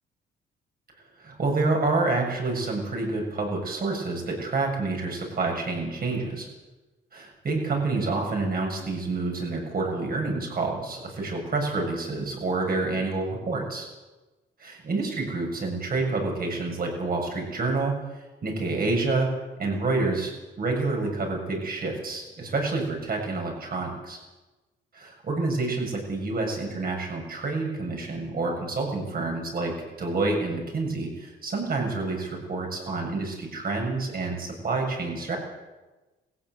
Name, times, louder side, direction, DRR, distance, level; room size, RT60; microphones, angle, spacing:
voice 1, 1.2-6.5 7.1-13.9 14.6-18.0 18.4-19.3 19.6-24.2 24.9-35.4, right 3 dB, 50° right, 1 dB, 7.1 m, -28 dB
18.0 x 15.5 x 9.3 m, 1.2 s
cardioid pair, 90°, 20 cm